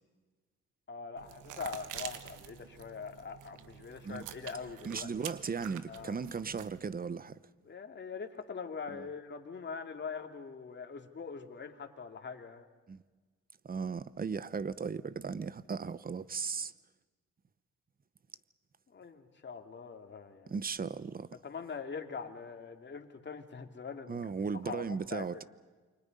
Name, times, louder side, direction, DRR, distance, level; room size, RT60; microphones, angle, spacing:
voice 1, 0.9-5.1 5.9-6.2 7.6-12.7 18.9-20.6 21.4-24.3 24.6-25.4, left 5 dB, 35° left, 2.7 m, -43 dB
sound 1, 1.2-6.8, right 10 dB, 85° right, 1.4 m, -47 dB
voice 2, 4.8-7.4 12.9-13.0 13.6-16.7 20.5-21.3 24.1-25.4, right 5 dB, 30° right, 0.9 m, -36 dB
29.0 x 25.0 x 5.4 m
cardioid pair, 90°, 30 cm